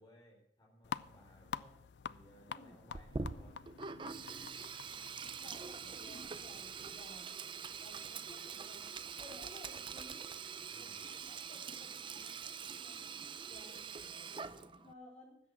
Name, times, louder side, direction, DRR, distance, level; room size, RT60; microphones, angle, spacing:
voice 1, 0.0-3.6 9.3-9.4 10.7-11.0, equal, 25° left, -1 dB, 4.4 m, -62 dB
sound 1, 0.8-7.0, left 7 dB, 75° left, 0.4 m, -48 dB
voice 2, 2.5-2.8 4.8-8.8 9.2-10.3 10.8-14.1 14.5-15.4, left 1 dB, 40° left, -2 dB, 4.3 m, -58 dB
Sink (filling or washing), 2.9-14.9, right 5 dB, 30° right, 0.5 m, -45 dB
13.0 x 8.3 x 6.0 m, 0.74 s
head